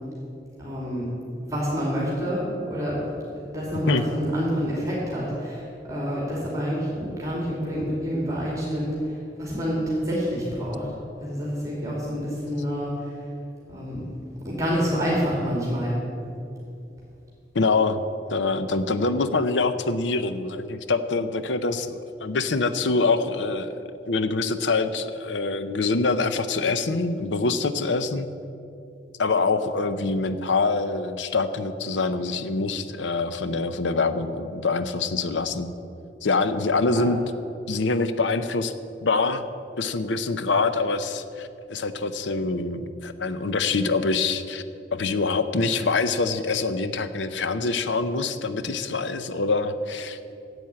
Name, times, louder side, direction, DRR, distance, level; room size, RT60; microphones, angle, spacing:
voice 1, 0.6-1.1 1.4-3.0 3.3-10.9 11.2-13.2 13.7-14.0 14.4-15.9 36.9-37.0, equal, 20° right, -5 dB, 2.5 m, -28 dB
voice 2, 17.5-18.0 18.3-23.8 24.1-28.3 29.2-35.7 36.2-37.2 37.7-38.7 39.0-39.4 39.8-44.6 44.9-50.2, left 3 dB, 85° left, 11 dB, 0.7 m, -25 dB
10.5 x 8.0 x 8.5 m, 2.6 s
head